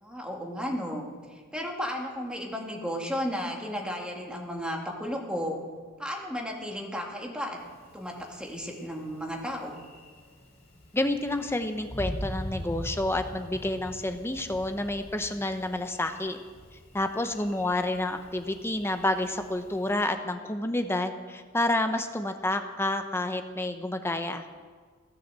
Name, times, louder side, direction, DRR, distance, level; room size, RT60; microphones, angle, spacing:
voice 1, 0.0-5.6 6.0-7.6 7.9-9.8, equal, 5° right, 0 dB, 2.1 m, -34 dB
Thunder, 7.6-19.9, equal, 30° left, 5.5 m, -43 dB
voice 2, 10.9-16.4 16.9-24.5, left 1 dB, 10° left, 7 dB, 0.9 m, -29 dB
16.0 x 10.5 x 7.5 m, 1.5 s
head